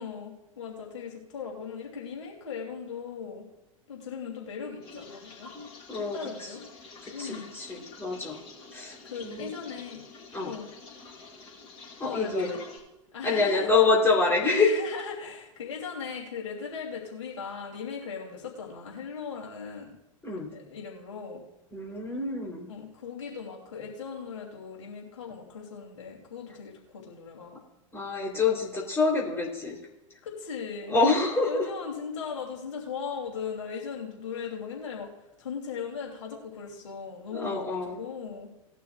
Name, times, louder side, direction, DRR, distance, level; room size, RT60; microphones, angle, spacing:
voice 1, 0.0-3.4 3.9-5.5 6.0-6.6 7.1-7.5 9.0-10.1 10.4-10.7 12.0-12.6 13.1-13.7 14.4-19.9 20.5-21.4 22.7-27.6 30.2-31.0 31.5-35.1 35.4-38.5, left 6 dB, 60° left, -1 dB, 3.0 m, -38 dB
sound 1, 4.8-12.8, left 3 dB, 35° left, 3.9 m, -47 dB
voice 2, 7.2-8.4 8.7-9.5 10.3-10.5 12.0-12.5 13.2-14.8 20.2-20.5 21.7-22.7 27.9-29.8 30.9-31.6 37.3-38.0, left 3 dB, 15° left, -2 dB, 3.4 m, -26 dB
19.0 x 11.5 x 2.4 m, 0.98 s
figure-of-eight pair, 95°, 17 cm